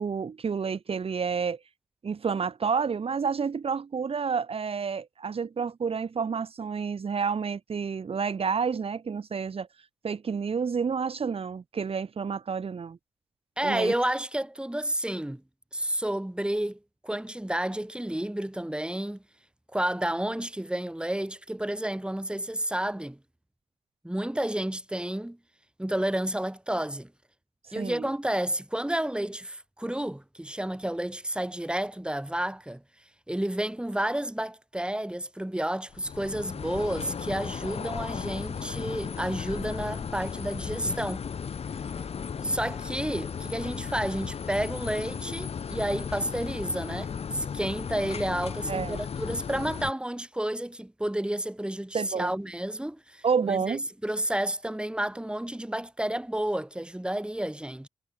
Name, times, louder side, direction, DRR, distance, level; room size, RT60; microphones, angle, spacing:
voice 1, 0.0-1.6 2.0-9.7 10.0-13.0 13.6-13.9 27.7-28.1 48.7-49.0 51.9-52.3 53.2-53.9, right 6 dB, 55° right, 3.6 m, -29 dB
voice 2, 13.6-15.4 15.7-19.2 19.7-23.2 24.0-25.4 25.8-27.1 27.7-32.8 33.3-41.2 42.0-42.1 42.4-57.9, right 1 dB, 10° right, 6.8 m, -31 dB
sound 1, 35.9-49.9, left 6 dB, 60° left, 3.5 m, -35 dB
supercardioid pair, 55°, 12 cm